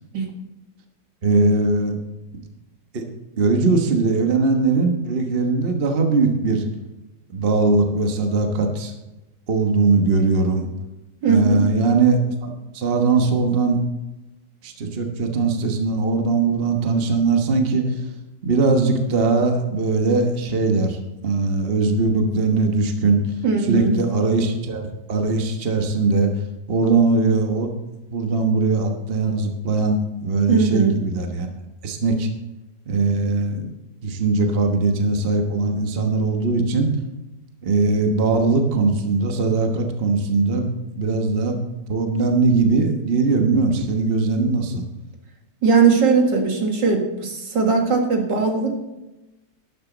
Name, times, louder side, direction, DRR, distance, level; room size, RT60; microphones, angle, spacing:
voice 1, 1.2-2.0 2.9-3.0 3.4-6.6 7.3-8.9 9.5-10.7 11.2-13.8 14.6-18.0 18.4-21.0 21.2-23.3 23.6-26.3 26.7-27.7 28.1-31.5 31.8-32.3 32.9-33.7 34.0-36.9 37.6-41.6 41.9-44.8, right 3 dB, 35° right, 4 dB, 1.3 m, -20 dB
voice 2, 11.2-11.7 23.4-24.0 30.5-30.9 45.6-48.7, right 5 dB, 75° right, 2 dB, 2.4 m, -19 dB
12.0 x 11.0 x 4.0 m, 1.0 s
omnidirectional pair, 2.0 m